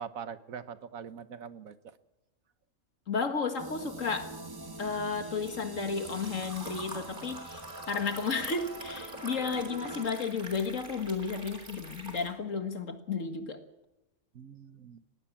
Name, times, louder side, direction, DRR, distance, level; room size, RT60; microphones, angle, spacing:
voice 1, 0.0-1.9 14.3-15.0, right 7 dB, 85° right, 13 dB, 1.5 m, -43 dB
voice 2, 3.1-4.3 4.8-7.6 7.9-13.6, left 5 dB, 70° left, 7 dB, 2.2 m, -33 dB
sound 1, 3.6-10.0, right 2 dB, 20° right, 0.9 m, -44 dB
Liquid, 4.0-12.3, right 1 dB, 35° right, 3.9 m, -46 dB
19.5 x 19.0 x 7.3 m, 0.95 s
omnidirectional pair, 1.4 m